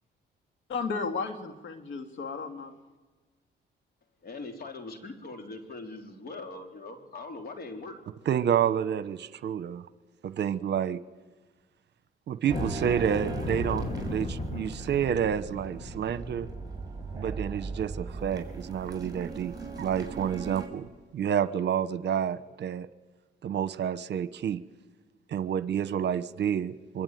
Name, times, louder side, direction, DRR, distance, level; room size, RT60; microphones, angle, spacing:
voice 1, 0.7-2.7, left 4 dB, 70° left, 7 dB, 2.6 m, -34 dB
voice 2, 4.2-7.9, left 3 dB, 50° left, 4 dB, 3.8 m, -41 dB
voice 3, 8.2-9.8 10.2-11.0 12.3-16.5 17.1-20.8 21.1-22.9 23.4-24.6 25.3-27.0, right 9 dB, 60° right, 14 dB, 1.0 m, -29 dB
sound 1, 12.5-19.2 19.6-19.7 20.2-20.3 20.8-21.0, left 3 dB, 35° left, 2.1 m, -39 dB
sound 2, 12.5-20.7, right 5 dB, 20° right, 6.2 m, -39 dB
24.5 x 24.0 x 9.3 m, 1.3 s
cardioid pair, 90°, 20 cm